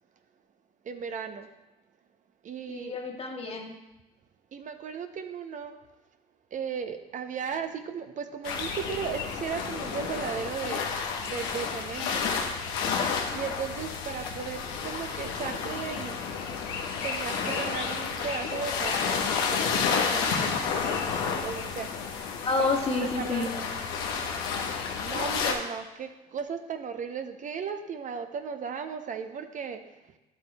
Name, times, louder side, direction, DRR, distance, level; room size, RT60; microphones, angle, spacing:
voice 1, 0.8-1.5 2.4-2.9 4.5-5.8 6.5-12.3 13.3-16.2 16.9-20.6 21.4-21.9 23.0-23.7 24.6-29.8, right 6 dB, 45° right, 7 dB, 0.6 m, -36 dB
voice 2, 2.7-3.7 22.4-23.5, left 3 dB, 35° left, 1 dB, 1.5 m, -29 dB
sound 1, 8.4-25.5, left 6 dB, 85° left, 1.0 m, -31 dB
10.5 x 8.2 x 2.2 m, 1.0 s
supercardioid pair, 80°, 18 cm